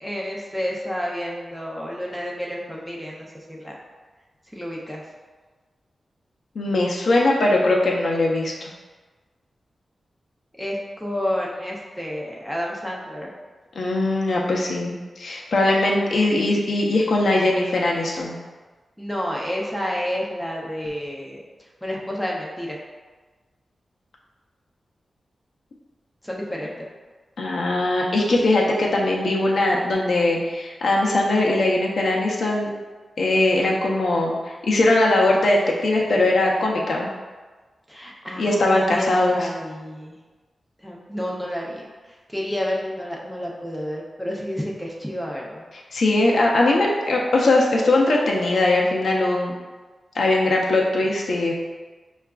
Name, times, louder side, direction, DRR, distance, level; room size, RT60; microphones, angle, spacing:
voice 1, 0.0-3.8 4.5-5.0 10.6-13.3 19.0-21.4 21.8-22.8 26.2-26.9 37.9-40.2 40.8-45.6, equal, ahead, -3 dB, 0.5 m, -30 dB
voice 2, 6.6-8.7 13.8-18.3 27.4-32.7 33.2-37.1 38.4-39.5 45.9-49.5 50.1-51.5, left 2 dB, 65° left, -2 dB, 0.5 m, -20 dB
5.6 x 2.4 x 2.2 m, 1.3 s
wide cardioid pair, 160°, 0 cm